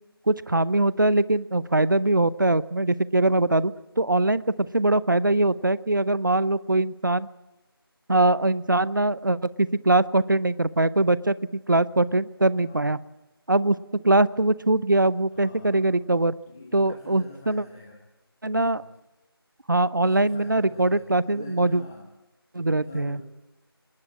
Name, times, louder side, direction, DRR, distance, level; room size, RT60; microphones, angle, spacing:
voice 1, 0.3-7.3 8.1-11.3 11.7-13.0 13.5-13.8 14.0-16.3 16.7-17.6 18.4-18.8 19.7-21.8 22.5-23.2, right 2 dB, 50° right, 19 dB, 0.7 m, -22 dB
voice 2, 12.6-13.0 15.3-15.9 16.5-18.0 18.4-18.9 20.0-22.0 22.7-23.2, left 3 dB, 10° left, -2 dB, 1.2 m, -45 dB
20.0 x 19.5 x 8.8 m, 1.0 s
figure-of-eight pair, 165°, 13 cm